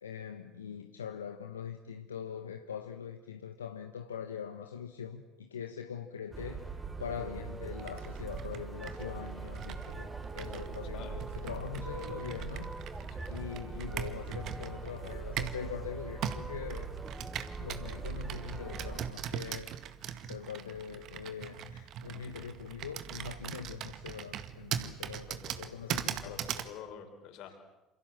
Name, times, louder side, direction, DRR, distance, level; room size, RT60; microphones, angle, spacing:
voice 1, 0.0-16.9 17.6-19.9 20.2-25.3 25.6-26.4, left 7 dB, 85° left, 1.3 m, -42 dB
sound 1, 6.3-19.1, right 4 dB, 20° right, 4.1 m, -41 dB
Computer keyboard, 7.8-15.7 16.2-26.7, right 9 dB, 55° right, 2.0 m, -41 dB
voice 2, 10.8-11.2 13.1-13.3 25.3-25.8 26.2-27.6, left 8 dB, 60° left, 5.8 m, -48 dB
28.0 x 28.0 x 7.6 m
hypercardioid pair, 65°, 0 cm